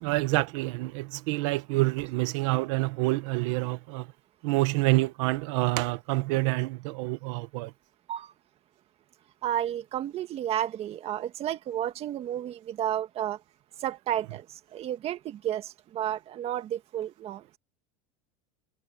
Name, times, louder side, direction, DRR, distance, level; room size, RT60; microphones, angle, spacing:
voice 1, 0.0-4.1 4.4-7.7, right 20 dB, 65° right, 1.4 m, -27 dB
voice 2, 9.4-13.4 13.8-14.5 14.7-17.6, right 11 dB, 35° right, 1.7 m, -32 dB
supercardioid pair, 145°, 17 cm